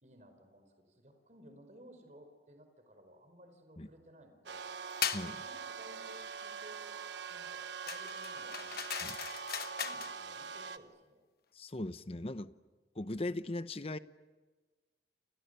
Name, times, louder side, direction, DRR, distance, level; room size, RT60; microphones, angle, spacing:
voice 1, 0.0-4.7 5.3-7.0 7.3-9.0 9.8-11.2, equal, 40° right, 6 dB, 4.9 m, -58 dB
sound 1, 4.5-10.8, right 5 dB, 85° right, 1.3 m, -43 dB
sound 2, 5.0-5.3 7.9-10.1, left 8 dB, 55° left, 1.2 m, -38 dB
voice 2, 11.5-12.5 13.0-14.0, left 2 dB, 35° left, 13 dB, 0.8 m, -39 dB
30.0 x 29.0 x 6.9 m, 1.3 s
head